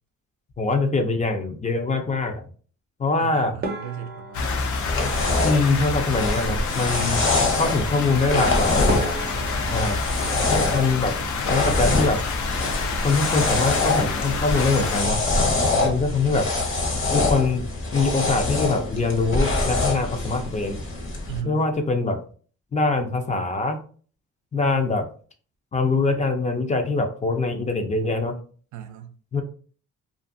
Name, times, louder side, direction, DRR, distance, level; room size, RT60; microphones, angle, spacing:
voice 1, 0.6-2.4 3.0-3.5 5.4-7.2 7.6-9.0 9.7-10.0 10.5-11.1 11.5-12.2 13.0-15.2 15.8-16.5 17.1-17.6 17.9-20.8 21.4-22.2 22.7-23.8 24.5-25.1 25.7-28.3 29.3-29.4, left 3 dB, 25° left, 0.5 m, -23 dB
voice 2, 3.2-4.5 7.4-7.6 15.7-16.0 21.3-21.7 28.7-29.1, right 10 dB, 70° right, 0.5 m, -36 dB
sound 1, 3.6-6.1 8.3-8.4 8.9-11.6 11.9-12.7 13.0-13.2 13.5-13.6 14.2-14.5, right 2 dB, 30° right, 0.6 m, -36 dB
sound 2, 4.3-15.0, left 4 dB, 75° left, 0.6 m, -28 dB
sound 3, 4.4-21.4, left 2 dB, 40° left, 0.9 m, -25 dB
2.5 x 2.5 x 2.5 m
cardioid pair, 90°, 30 cm